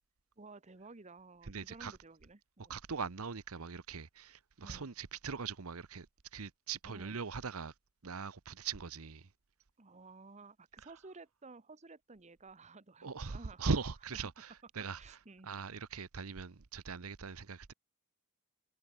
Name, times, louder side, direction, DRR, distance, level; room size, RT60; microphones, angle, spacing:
voice 1, 0.4-2.8 4.6-4.9 6.9-7.2 9.8-13.7 15.0-15.5, right 3 dB, 35° right, 1.0 m, -54 dB
voice 2, 1.5-2.0 2.7-6.1 6.3-7.7 8.0-9.3 13.0-15.0 15.4-17.7, right 5 dB, 80° right, 0.9 m, -40 dB
head